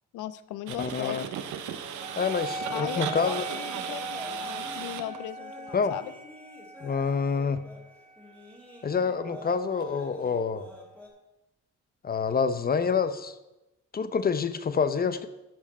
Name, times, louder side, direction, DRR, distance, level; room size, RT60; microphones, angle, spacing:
voice 1, 0.1-1.3 2.7-6.1, left 12 dB, 90° left, 15 dB, 0.5 m, -38 dB
sound 1, 0.7-5.2 9.8-9.9, right 9 dB, 80° right, 0.9 m, -36 dB
voice 2, 0.8-1.2 2.2-3.5 5.7-5.9 6.8-7.6 8.8-10.7 12.0-13.4 13.9-15.3, left 5 dB, 30° left, 12 dB, 0.7 m, -27 dB
sound 2, 0.8-11.1, left 2 dB, 5° left, 2.0 m, -49 dB
Wind instrument woodwind instrument, 2.0-10.9, right 2 dB, 25° right, 0.7 m, -41 dB
13.0 x 5.1 x 4.2 m, 0.97 s
cardioid pair, 90°, 30 cm